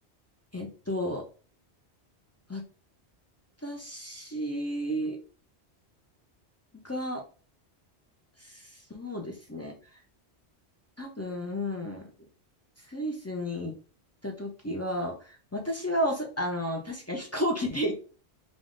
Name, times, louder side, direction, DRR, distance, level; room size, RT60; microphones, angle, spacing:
voice 1, 0.5-1.3 2.5-2.6 3.6-5.2 6.8-7.2 8.4-9.7 11.0-12.0 12.9-13.7 14.2-17.9, equal, 20° left, 0 dB, 0.4 m, -32 dB
3.5 x 2.5 x 3.7 m, 0.38 s
omnidirectional pair, 1.1 m